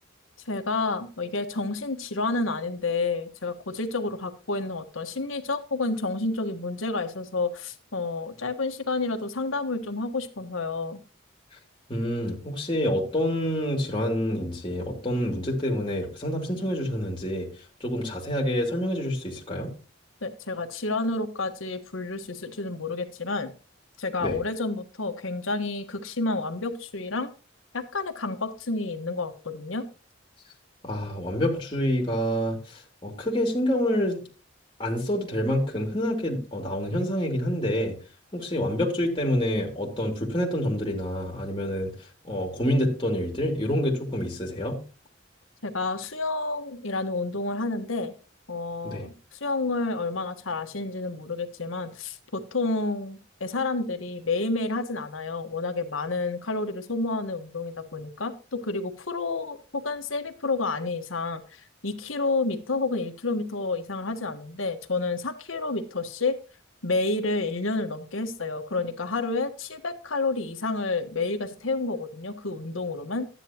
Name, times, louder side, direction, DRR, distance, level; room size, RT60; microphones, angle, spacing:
voice 1, 0.5-11.0 20.2-23.5 24.0-27.3 27.7-29.9 45.6-48.1 48.5-61.4 61.8-66.4 66.8-73.3, left 3 dB, 90° left, 7 dB, 1.4 m, -30 dB
voice 2, 11.9-17.5 17.8-19.7 24.2-24.4 30.8-34.2 34.8-37.9 38.3-41.9 42.2-44.8 48.8-49.0, equal, 25° left, 0 dB, 2.6 m, -27 dB
13.0 x 10.0 x 2.9 m, 0.34 s
head